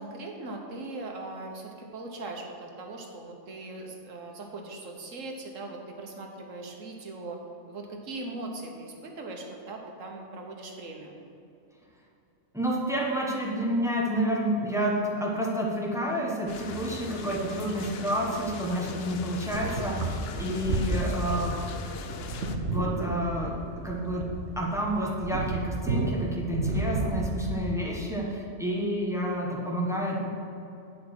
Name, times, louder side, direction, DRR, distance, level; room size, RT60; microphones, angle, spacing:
voice 1, 0.0-7.4 7.7-11.1, right 2 dB, 80° right, 1 dB, 1.5 m, -40 dB
voice 2, 12.5-21.6 22.7-23.5 23.8-24.2 24.6-30.3, equal, ahead, -2 dB, 1.2 m, -29 dB
sound 1, 16.5-22.6, left 5 dB, 60° left, 0.8 m, -39 dB
sound 2, 19.5-27.7, right 2 dB, 65° right, 1.2 m, -31 dB
10.0 x 5.1 x 6.0 m, 2.6 s
omnidirectional pair, 1.3 m